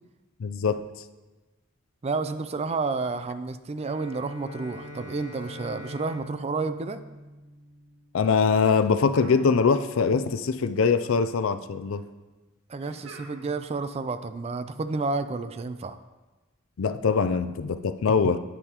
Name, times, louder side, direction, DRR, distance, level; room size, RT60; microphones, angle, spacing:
voice 1, 0.4-0.8 8.1-12.0 16.8-18.4, left 5 dB, 70° left, 11 dB, 0.4 m, -23 dB
voice 2, 2.0-7.0 12.7-16.0, right 3 dB, 30° right, 11 dB, 0.4 m, -30 dB
Bowed string instrument, 3.7-8.1, equal, 60° right, 1.4 m, -43 dB
sound 1, 9.1-10.1 10.4-11.2 12.8-13.7, right 2 dB, 85° right, 1.6 m, -49 dB
9.9 x 9.1 x 3.0 m, 1.2 s
head